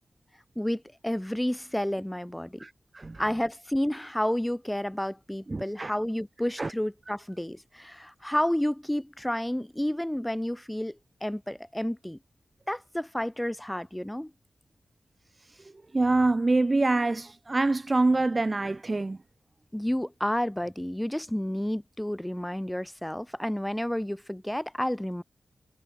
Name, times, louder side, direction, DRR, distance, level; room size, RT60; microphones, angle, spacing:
voice 1, 0.6-2.7 3.2-12.2 12.7-14.3 19.7-25.2, left 1 dB, 5° left, 1.0 m, -30 dB
voice 2, 2.6-3.2 5.5-5.9 6.6-6.7 15.9-19.2, right 2 dB, 30° right, 0.3 m, -25 dB
wide cardioid pair, 90°, 0 cm